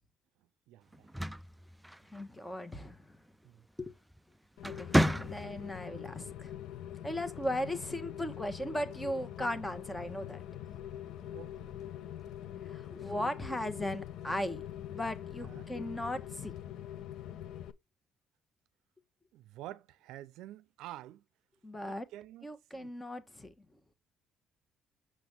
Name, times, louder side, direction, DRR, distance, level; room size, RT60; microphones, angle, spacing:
voice 1, 0.7-1.1 3.4-3.6 10.7-10.8 11.3-11.7 15.4-15.7 19.3-21.2 21.8-22.5 22.7-22.9, right 14 dB, 85° right, 0.4 m, -49 dB
sound 1, 0.9-2.5 3.9-4.2 4.6-5.8, equal, 5° right, 0.3 m, -31 dB
voice 2, 2.1-3.2 3.8-3.9 4.6-6.5 7.0-10.4 12.6-16.5 21.6-22.1 22.4-23.7, left 1 dB, 10° left, 1.1 m, -38 dB
Rain, 4.6-17.7, left 11 dB, 75° left, 0.5 m, -44 dB
6.4 x 6.0 x 3.4 m
cardioid pair, 110°, 0 cm